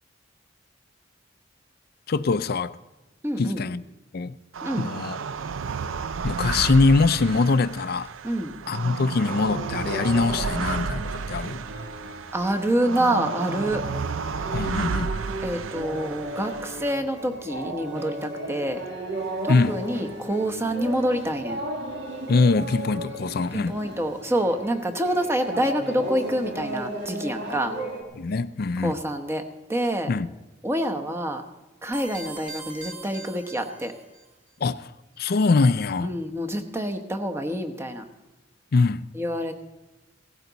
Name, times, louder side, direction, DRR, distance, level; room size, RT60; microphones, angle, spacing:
voice 1, 2.1-2.8 3.4-3.8 4.1-4.4 4.8-5.2 6.2-8.1 8.7-11.6 14.5-15.1 19.5-19.7 22.3-23.8 28.2-28.9 30.1-30.3 34.6-34.9 35.2-36.1 38.7-39.0, left 3 dB, 50° left, 0.4 m, -23 dB
voice 2, 3.2-3.6 4.6-4.9 8.2-8.6 12.3-13.8 15.4-18.8 19.4-21.6 23.5-27.8 28.8-29.4 29.7-30.1 30.6-31.4 31.8-33.9 36.0-38.0 39.1-39.5, right 1 dB, 15° right, 1.0 m, -27 dB
sound 1, 4.5-16.9, right 5 dB, 80° right, 0.5 m, -32 dB
sound 2, 9.3-28.0, right 1 dB, 60° right, 2.3 m, -35 dB
sound 3, 31.9-34.3, right 3 dB, 40° right, 2.7 m, -41 dB
17.0 x 15.0 x 4.0 m
head